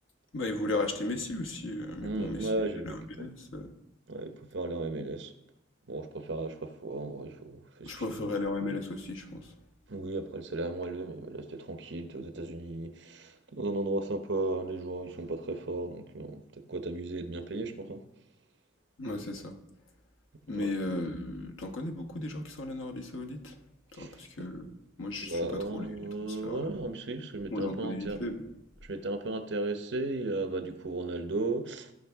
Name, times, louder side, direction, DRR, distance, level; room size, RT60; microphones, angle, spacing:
voice 1, 0.3-3.7 7.8-9.5 19.0-19.6 20.5-23.6 24.0-24.7 25.0-25.9 26.2-26.7 27.5-28.5, left 2 dB, 85° left, 1.2 m, -36 dB
voice 2, 2.0-3.3 4.1-5.3 5.9-8.3 9.9-18.0 20.5-20.7 23.9-24.1 25.2-28.2 28.8-31.9, right 2 dB, 65° right, 0.9 m, -35 dB
15.5 x 5.5 x 3.6 m
head